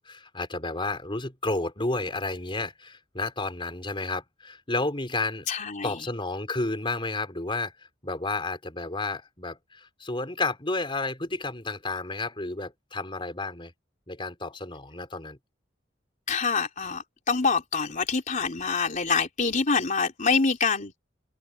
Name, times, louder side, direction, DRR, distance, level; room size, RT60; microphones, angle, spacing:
voice 1, 0.0-5.5 5.8-7.7 8.0-13.7 14.1-15.4, left 2 dB, 25° left, 4.3 m, -31 dB
voice 2, 5.5-5.9 16.3-20.9, left 5 dB, 40° left, 3.4 m, -26 dB
head